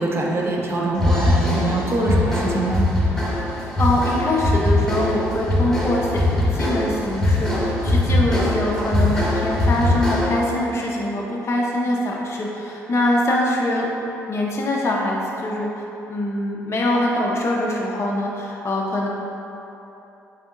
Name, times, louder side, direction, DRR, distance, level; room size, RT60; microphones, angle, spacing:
voice 1, 0.0-2.8, right 2 dB, 30° right, -2 dB, 0.6 m, -23 dB
sound 1, 1.0-10.5, left 1 dB, 10° left, 0.9 m, -21 dB
voice 2, 3.5-13.9 14.3-19.1, left 1 dB, 35° left, -2 dB, 0.5 m, -23 dB
4.1 x 3.4 x 2.4 m, 2.9 s
hypercardioid pair, 45°, 8 cm